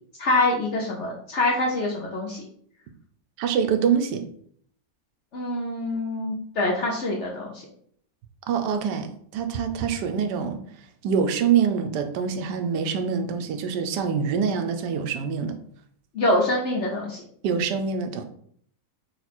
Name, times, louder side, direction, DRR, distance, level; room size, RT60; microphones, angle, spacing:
voice 1, 0.2-2.4 5.3-7.6 16.1-17.2, left 2 dB, 65° left, -1 dB, 0.7 m, -25 dB
voice 2, 3.4-4.2 8.5-10.6 11.0-15.6 17.4-18.2, right 7 dB, 80° right, 6 dB, 1.2 m, -25 dB
4.1 x 2.3 x 4.2 m, 0.63 s
omnidirectional pair, 1.8 m